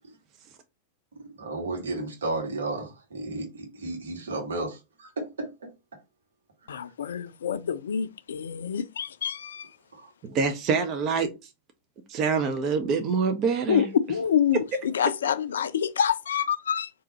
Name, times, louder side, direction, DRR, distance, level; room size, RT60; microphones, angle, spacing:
voice 1, 1.4-5.7 9.9-10.4, right 2 dB, 70° right, 1.6 m, -33 dB
voice 2, 6.7-9.7 13.7-16.9, left 8 dB, 65° left, 0.4 m, -27 dB
voice 3, 10.2-11.3 12.1-13.9, right 5 dB, 35° right, 0.6 m, -25 dB
3.7 x 2.7 x 4.1 m
figure-of-eight pair, 90°, 0 cm